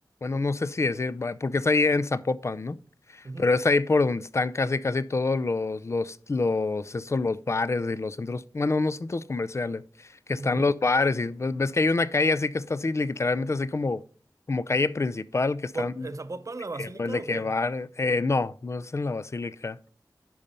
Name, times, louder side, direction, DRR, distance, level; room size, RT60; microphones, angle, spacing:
voice 1, 0.2-2.8 3.1-14.0 14.5-16.1 16.8-19.8, left 3 dB, 40° left, 0.4 m, -26 dB
voice 2, 10.4-10.7 15.7-17.5, right 3 dB, 45° right, 0.7 m, -36 dB
10.5 x 5.4 x 4.3 m
wide cardioid pair, 75°, 7 cm